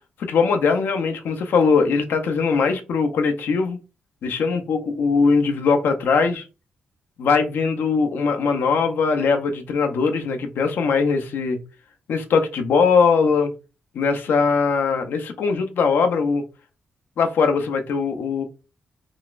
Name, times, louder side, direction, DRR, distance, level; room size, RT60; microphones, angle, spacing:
voice 1, 0.2-3.8 4.2-6.5 7.2-11.6 12.1-13.5 13.9-16.4 17.2-18.4, left 5 dB, 75° left, 0.6 m, -20 dB
3.8 x 2.3 x 2.4 m
cardioid pair, 60°, 3 cm